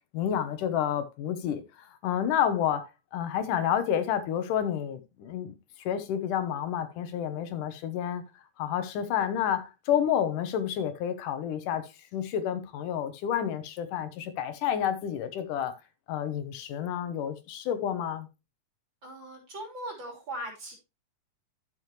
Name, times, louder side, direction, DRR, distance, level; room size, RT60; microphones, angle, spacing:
voice 1, 0.1-8.2 8.6-15.8 16.1-18.3, left 9 dB, 80° left, 2.6 m, -30 dB
voice 2, 19.0-20.8, right 1 dB, 35° right, 3.6 m, -39 dB
12.0 x 6.3 x 3.2 m
omnidirectional pair, 3.6 m